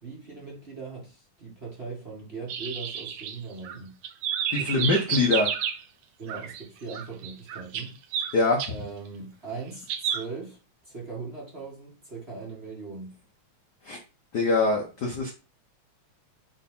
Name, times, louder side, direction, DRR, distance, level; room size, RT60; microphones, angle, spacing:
voice 1, 0.0-4.0 4.6-4.9 5.2-5.3 6.2-7.9 8.7-13.2, right 4 dB, 25° right, 1.7 m, -39 dB
sound 1, 2.5-3.8 4.0-5.8 6.3-6.6 6.9-8.7 9.9-10.2, right 9 dB, 75° right, 1.5 m, -31 dB
voice 2, 4.5-5.5 8.3-8.6 13.8-14.0 14.3-15.3, left 3 dB, 75° left, 0.9 m, -23 dB
5.6 x 4.2 x 5.5 m
omnidirectional pair, 3.6 m